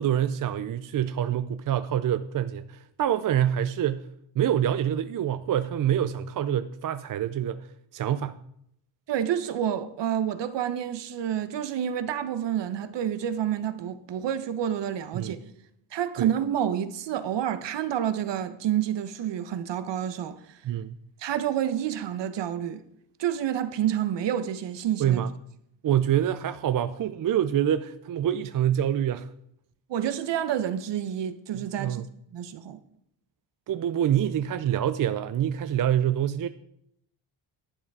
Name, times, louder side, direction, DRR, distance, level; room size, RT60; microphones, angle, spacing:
voice 1, 0.0-4.1 4.4-7.7 7.9-8.4 15.1-15.4 16.2-16.3 20.6-21.0 25.0-25.3 25.8-29.3 31.6-32.1 33.7-36.5, right 10 dB, 45° right, 0.5 m, -26 dB
voice 2, 9.1-15.4 15.9-20.6 21.2-22.8 23.2-25.2 29.9-32.0 32.3-32.8, right 10 dB, 65° right, 1.1 m, -29 dB
11.0 x 8.7 x 4.8 m
cardioid pair, 95°, 47 cm